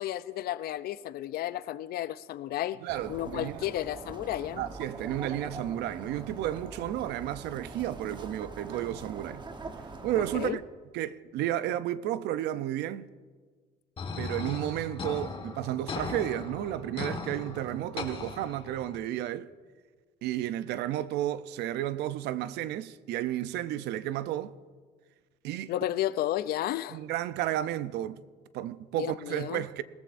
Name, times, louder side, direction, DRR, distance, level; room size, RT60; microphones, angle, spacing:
voice 1, 0.0-2.8 3.1-4.6 10.3-10.6 25.7-27.0 28.9-29.6, left 13 dB, 65° left, 0.5 m, -32 dB
voice 2, 2.8-3.7 4.6-9.4 10.0-10.6 10.9-13.1 14.2-19.5 20.2-24.6 25.4-25.7 26.9-28.2 28.5-29.8, right 13 dB, 80° right, 0.5 m, -32 dB
sound 1, 2.9-10.5, right 3 dB, 25° right, 1.0 m, -43 dB
sound 2, 14.0-19.0, left 4 dB, 35° left, 1.6 m, -38 dB
20.0 x 14.5 x 2.6 m
cardioid pair, 110°, 17 cm